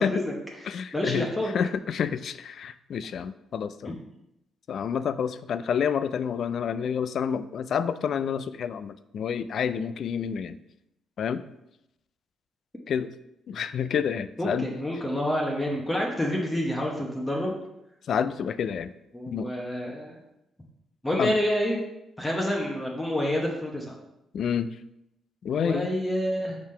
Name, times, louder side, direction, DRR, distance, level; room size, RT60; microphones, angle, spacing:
voice 1, 0.0-1.5 3.8-3.9 14.4-17.6 19.1-20.2 21.0-21.8 22.2-23.9 25.6-26.6, left 1 dB, 10° left, -1 dB, 0.9 m, -28 dB
voice 2, 0.7-1.3 1.5-3.9 4.7-10.6 11.2-11.4 12.9-13.1 13.5-14.7 18.1-18.9 19.3-19.5 21.2-21.4 24.3-24.7 25.4-25.9, left 7 dB, 60° left, 13 dB, 0.3 m, -28 dB
4.7 x 3.7 x 5.5 m, 0.87 s
cardioid pair, 110°, 0 cm